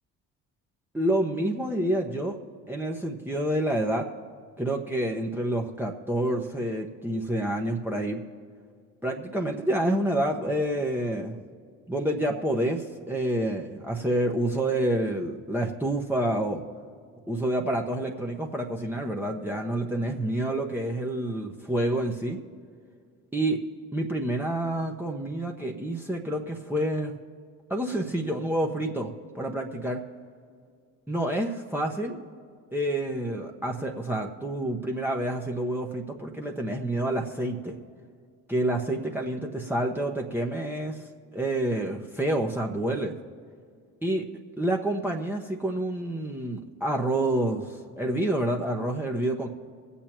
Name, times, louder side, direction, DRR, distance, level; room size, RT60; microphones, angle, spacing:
voice 1, 0.9-2.4 2.7-4.1 4.6-8.2 9.0-11.4 11.9-16.6 17.3-22.4 23.3-23.6 23.9-27.1 27.7-30.0 31.1-32.2 32.7-37.8 38.5-41.0 41.3-43.2 44.0-44.2 44.6-49.5, right 1 dB, 5° right, 1 dB, 1.2 m, -28 dB
24.5 x 8.6 x 3.0 m, 2.1 s
hypercardioid pair, 60°, 40 cm